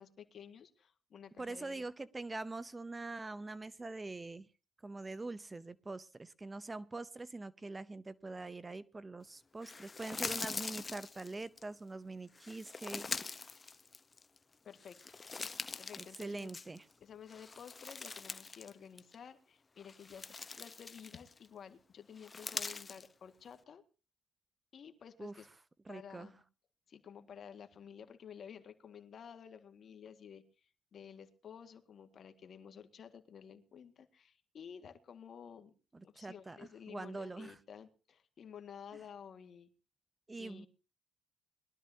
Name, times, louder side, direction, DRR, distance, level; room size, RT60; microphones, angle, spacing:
voice 1, 0.0-1.9 14.6-15.2 15.8-16.5 17.0-20.3 20.6-23.8 24.7-25.5 25.9-26.4 26.9-35.7 36.0-39.7 40.4-40.7, left 7 dB, 55° left, 8 dB, 1.9 m, -52 dB
voice 2, 1.4-4.5 4.8-13.1 16.0-16.9 25.2-25.4 25.9-26.3 35.9-37.6 40.3-40.7, right 3 dB, 20° right, 17 dB, 0.7 m, -44 dB
sound 1, 9.6-11.6 12.3-14.4 14.8-16.9 17.3-18.7 19.0-19.2 19.8-21.5 22.2-23.1, left 4 dB, 30° left, 1.0 m, -43 dB
22.0 x 12.5 x 2.8 m, 0.34 s
cardioid pair, 90°, 0 cm